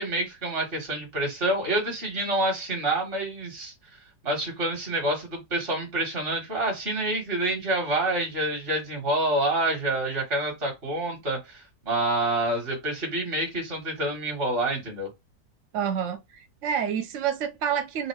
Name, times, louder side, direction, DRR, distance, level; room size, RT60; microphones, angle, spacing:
voice 1, 0.0-3.7 4.2-15.1, right 1 dB, 35° right, 1.5 m, -27 dB
voice 2, 15.7-18.1, right 8 dB, 75° right, 0.7 m, -28 dB
3.7 x 2.4 x 4.5 m
omnidirectional pair, 1.9 m